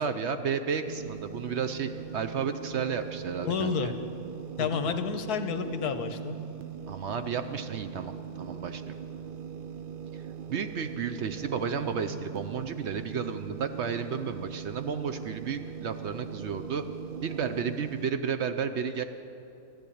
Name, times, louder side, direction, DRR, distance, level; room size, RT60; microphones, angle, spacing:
voice 1, 0.0-3.9 4.6-5.0 6.9-9.0 10.5-16.9 17.2-19.0, right 6 dB, 60° right, 9 dB, 0.8 m, -32 dB
sound 1, 0.9-18.1, right 7 dB, 90° right, 0.4 m, -41 dB
voice 2, 3.4-3.9 4.6-6.4, left 6 dB, 90° left, 9 dB, 1.4 m, -30 dB
14.0 x 10.5 x 8.5 m, 2.7 s
omnidirectional pair, 1.6 m